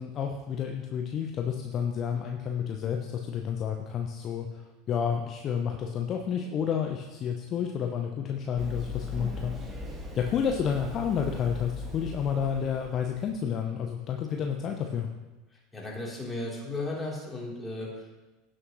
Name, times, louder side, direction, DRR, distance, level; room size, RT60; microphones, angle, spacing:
voice 1, 0.0-9.8 10.1-15.1, left 7 dB, 35° left, 3 dB, 0.8 m, -30 dB
Run, 8.6-13.4, left 2 dB, 20° right, 1.6 m, -39 dB
voice 2, 15.7-18.0, left 2 dB, 10° left, -4 dB, 3.3 m, -35 dB
16.5 x 6.3 x 3.1 m, 1.1 s
figure-of-eight pair, 75°, 0 cm